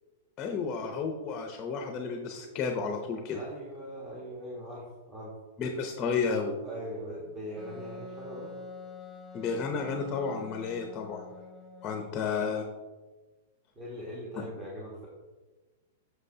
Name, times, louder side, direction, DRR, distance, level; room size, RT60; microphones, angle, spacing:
voice 1, 0.4-3.4 5.6-6.5 9.3-11.2 11.8-12.6, left 5 dB, 25° left, 3 dB, 0.7 m, -32 dB
voice 2, 3.3-5.4 6.6-8.5 12.1-12.2 13.7-15.1, equal, 20° right, -5 dB, 1.2 m, -41 dB
Wind instrument woodwind instrument, 7.6-12.2, left 2 dB, 5° left, 1.1 m, -46 dB
7.7 x 6.1 x 2.7 m, 1.3 s
supercardioid pair, 155°, 0 cm